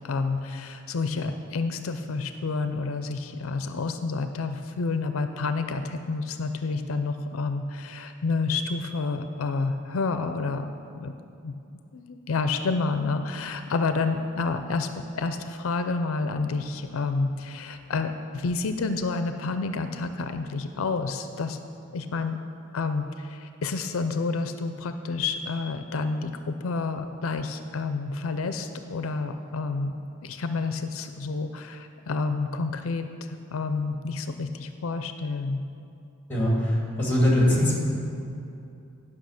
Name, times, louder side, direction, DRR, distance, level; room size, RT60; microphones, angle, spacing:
voice 1, 0.0-10.7 11.0-11.1 11.4-11.6 11.9-14.9 15.1-21.6 21.9-22.4 22.7-29.9 30.2-35.6, left 4 dB, 80° left, 8 dB, 0.5 m, -29 dB
voice 2, 36.3-37.8, left 1 dB, 10° left, -4 dB, 2.2 m, -22 dB
10.5 x 5.6 x 6.4 m, 2.7 s
head